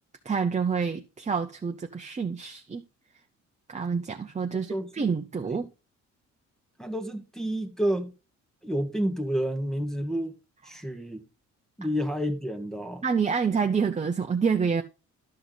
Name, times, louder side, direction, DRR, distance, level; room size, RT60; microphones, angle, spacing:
voice 1, 0.2-2.8 3.7-5.7 13.0-14.8, right 5 dB, 25° right, 0.8 m, -27 dB
voice 2, 4.7-5.0 5.5-5.7 6.8-8.1 8.6-10.4 10.6-11.2 11.8-13.0, equal, ahead, 1.3 m, -30 dB
12.0 x 5.8 x 4.0 m
cardioid pair, 90°, 30 cm